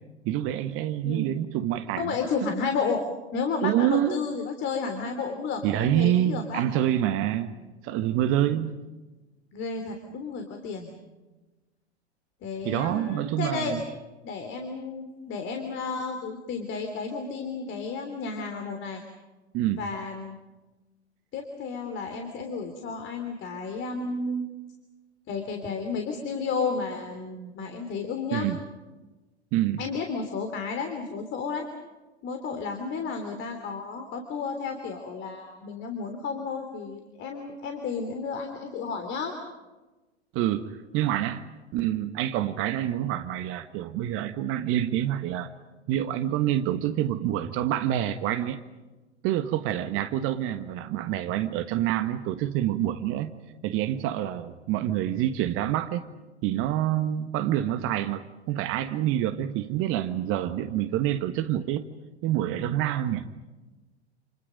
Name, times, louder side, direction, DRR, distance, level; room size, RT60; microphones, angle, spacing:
voice 1, 0.2-2.1 3.6-4.2 5.6-7.6 7.8-8.7 12.6-13.8 19.5-19.8 28.3-28.6 29.5-29.8 40.3-41.4 41.7-45.5 45.9-48.6 49.2-53.3 53.6-56.1 56.4-61.8 62.2-63.3, right 12 dB, 40° right, 10 dB, 1.5 m, -27 dB
voice 2, 1.0-1.4 2.0-3.1 3.3-6.6 8.4-8.7 9.5-11.0 12.4-13.8 14.2-19.0 19.8-20.4 21.3-24.4 25.3-28.5 29.8-31.7 32.2-39.4, left 4 dB, 35° left, 5 dB, 3.4 m, -32 dB
29.5 x 28.5 x 5.3 m, 1.1 s
figure-of-eight pair, 90°, 34 cm